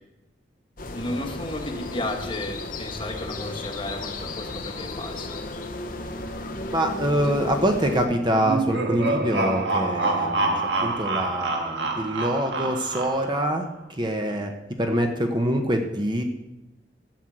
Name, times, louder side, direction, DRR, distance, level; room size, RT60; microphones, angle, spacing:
sound 1, 0.8-8.1, left 2 dB, 50° left, 1.0 m, -34 dB
voice 1, 0.9-5.4 7.2-7.3 14.3-14.5, left 1 dB, 30° left, 3 dB, 1.4 m, -33 dB
voice 2, 6.7-10.5 10.8-13.7 14.0-14.5 14.8-16.2, right 1 dB, 25° right, 4 dB, 1.0 m, -25 dB
sound 2, 8.4-13.5, right 2 dB, 75° right, 1.6 m, -26 dB
13.5 x 6.3 x 7.7 m, 0.98 s
head